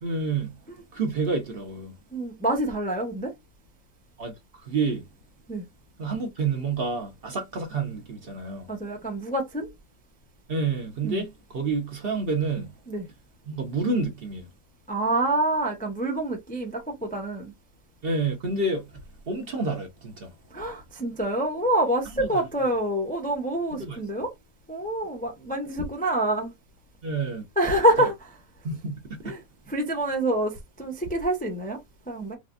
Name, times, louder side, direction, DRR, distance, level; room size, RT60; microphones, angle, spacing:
voice 1, 0.0-0.5 0.9-1.9 4.2-5.0 6.0-8.7 10.5-12.7 13.5-14.5 18.0-19.0 19.3-20.3 22.2-22.3 23.8-24.0 27.0-27.4 28.6-28.9, right 3 dB, 50° right, 1.0 m, -29 dB
voice 2, 2.1-3.3 5.5-5.6 8.7-9.7 11.0-11.2 12.9-13.1 14.9-17.5 20.5-24.3 24.7-26.5 27.6-28.1 29.2-29.4 29.7-32.4, right 1 dB, 10° left, 0.5 m, -26 dB
4.1 x 2.4 x 2.4 m
omnidirectional pair, 1.5 m